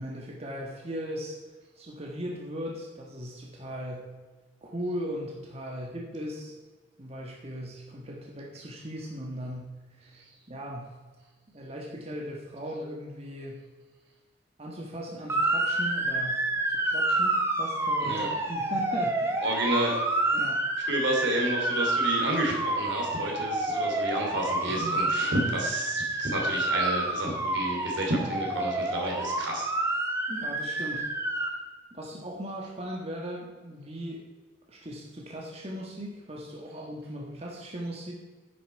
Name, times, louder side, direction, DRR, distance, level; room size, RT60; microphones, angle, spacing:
voice 1, 0.0-1.4 1.8-4.1 4.6-6.5 7.0-11.0 11.5-13.7 14.6-18.2 18.5-19.4 20.3-20.6 24.7-25.0 30.3-31.1 31.9-34.2 34.7-38.1, equal, 35° right, -1 dB, 1.5 m, -38 dB
Motor vehicle (road) / Siren, 15.3-31.5, right 2 dB, 15° right, 1.5 m, -28 dB
voice 2, 19.4-19.9 20.8-29.7, right 1 dB, 80° right, 0 dB, 3.2 m, -30 dB
10.0 x 9.1 x 4.6 m, 1.3 s
head